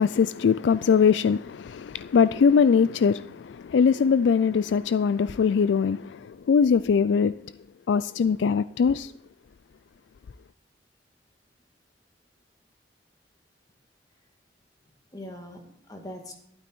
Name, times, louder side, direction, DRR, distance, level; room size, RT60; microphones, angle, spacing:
voice 1, 0.0-7.4 7.9-9.1, left 6 dB, 85° left, 0.4 m, -22 dB
voice 2, 14.8-16.4, left 1 dB, 20° left, 1.9 m, -43 dB
12.0 x 12.0 x 4.6 m
head